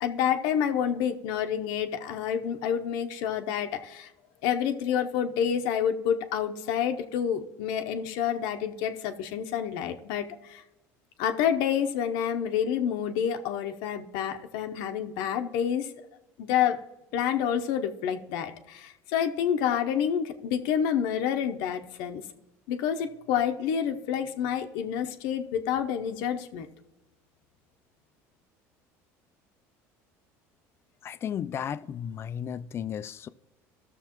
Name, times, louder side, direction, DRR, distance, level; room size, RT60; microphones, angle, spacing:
voice 1, 0.0-4.1 4.4-10.6 11.2-15.9 16.4-16.8 17.1-22.2 22.7-26.7, left 8 dB, 75° left, 0.7 m, -28 dB
voice 2, 31.0-33.3, left 8 dB, 35° left, 0.4 m, -34 dB
14.5 x 6.7 x 3.0 m
supercardioid pair, 115°, 7 cm